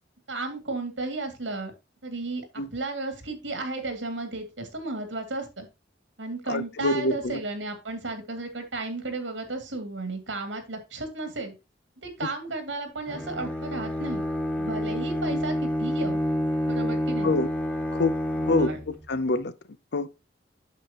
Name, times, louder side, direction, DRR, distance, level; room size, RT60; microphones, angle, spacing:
voice 1, 0.3-1.7 2.0-2.5 2.7-5.7 6.2-11.5 12.0-14.2 14.6-16.2 16.7-17.3 18.6-18.8, right 2 dB, 90° right, 2.5 m, -34 dB
voice 2, 6.5-7.4 15.3-15.4 17.2-17.5 17.9-19.5 19.9-20.1, left 2 dB, 65° left, 0.7 m, -26 dB
Bowed string instrument, 13.1-19.1, equal, 10° left, 1.6 m, -28 dB
8.4 x 6.8 x 2.9 m
head